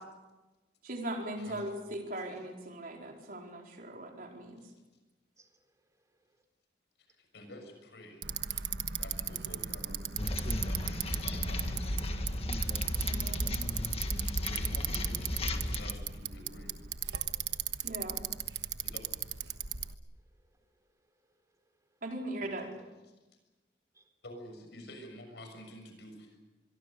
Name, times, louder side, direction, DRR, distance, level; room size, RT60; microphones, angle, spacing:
voice 1, 0.8-4.6 13.0-13.5 17.8-18.3 22.0-22.7, right 1 dB, 50° right, 1 dB, 4.5 m, -39 dB
voice 2, 5.4-6.4 17.5-17.8 20.3-21.4 21.7-22.0 23.9-24.1, right 2 dB, 20° right, 5 dB, 3.9 m, -72 dB
voice 3, 7.1-8.3 8.9-9.9 10.2-12.3 14.3-16.7 18.8-19.0 22.4-22.7 24.2-26.4, left 1 dB, 70° left, 5 dB, 6.7 m, -50 dB
Bicycle, 8.2-19.9, right 9 dB, 70° right, 1.3 m, -37 dB
sound 1, 10.2-15.9, left 1 dB, 35° left, 1.7 m, -34 dB
25.0 x 23.0 x 6.9 m, 1.1 s
head